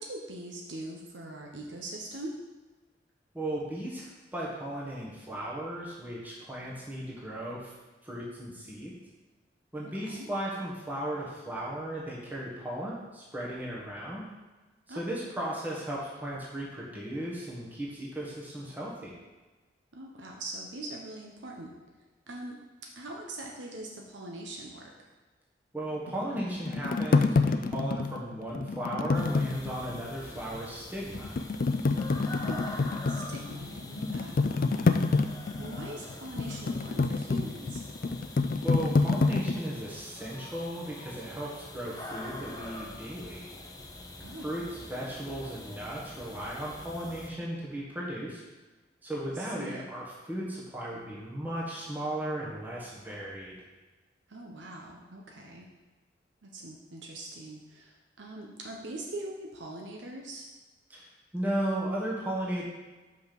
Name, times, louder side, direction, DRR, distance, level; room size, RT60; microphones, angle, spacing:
voice 1, 0.0-2.3 9.8-10.3 14.9-15.2 19.9-21.7 22.3-22.5 23.0-24.9 32.2-34.4 35.6-37.8 44.2-44.5 49.3-49.9 54.3-55.7 56.4-60.5, right 1 dB, 85° right, -1 dB, 0.9 m, -42 dB
voice 2, 3.3-7.7 8.0-8.9 9.7-14.2 14.9-19.1 25.7-31.4 38.6-43.5 44.4-44.6 44.9-48.4 49.0-53.6 60.9-62.6, right 1 dB, 10° right, -6 dB, 1.4 m, -36 dB
sound 1, 26.1-30.1 30.5-30.6 31.1-39.6, left 3 dB, 50° left, 0.3 m, -28 dB
sound 2, 29.1-47.3, left 2 dB, 20° left, 0.7 m, -45 dB
5.7 x 5.2 x 6.0 m, 1.2 s
head